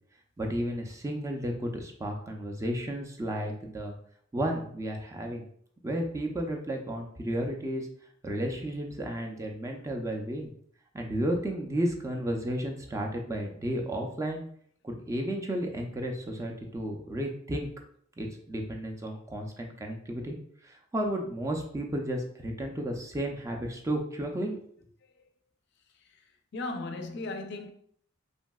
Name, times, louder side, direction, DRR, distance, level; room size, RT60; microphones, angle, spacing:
voice 1, 0.4-3.9 4.3-5.4 5.8-7.9 8.2-10.5 10.9-14.4 14.8-17.7 18.2-20.4 20.6-24.6, right 1 dB, 15° right, 0.3 m, -33 dB
voice 2, 25.9-27.7, left 2 dB, 60° left, 0.4 m, -38 dB
3.1 x 2.6 x 2.2 m
head